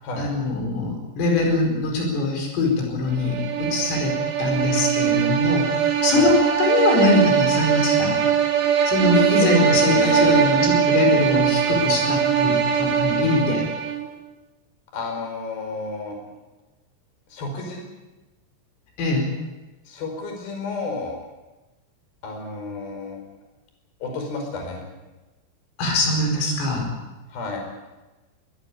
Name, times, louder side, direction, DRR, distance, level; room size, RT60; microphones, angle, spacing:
voice 1, 0.2-8.2 8.9-13.6 19.0-19.3 25.8-26.9, left 3 dB, 85° left, 2 dB, 7.3 m, -22 dB
sound 1, 3.2-14.1, right 9 dB, 65° right, 4.2 m, -21 dB
voice 2, 9.2-10.6 14.9-16.2 17.3-17.8 19.9-21.2 22.2-23.2 24.0-24.8 27.3-27.6, left 4 dB, 50° left, 3 dB, 6.7 m, -30 dB
22.0 x 20.5 x 8.6 m, 1.1 s
omnidirectional pair, 5.7 m